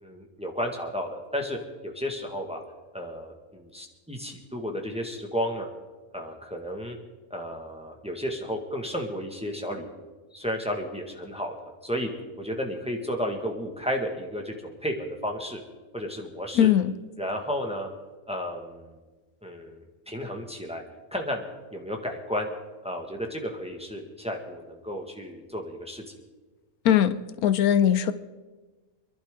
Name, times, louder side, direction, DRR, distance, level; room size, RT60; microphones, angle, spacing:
voice 1, 0.0-2.6 2.9-5.7 6.1-7.0 7.3-10.1 10.3-11.6 11.8-12.1 12.4-15.6 15.9-16.7 17.2-17.9 18.3-18.9 19.4-20.8 21.1-21.4 21.7-22.5 22.8-26.0, equal, 5° right, 2 dB, 1.6 m, -33 dB
voice 2, 16.6-16.9 26.8-27.2 27.4-28.1, left 10 dB, 80° left, 13 dB, 1.1 m, -20 dB
26.5 x 11.5 x 3.8 m, 1.3 s
omnidirectional pair, 1.6 m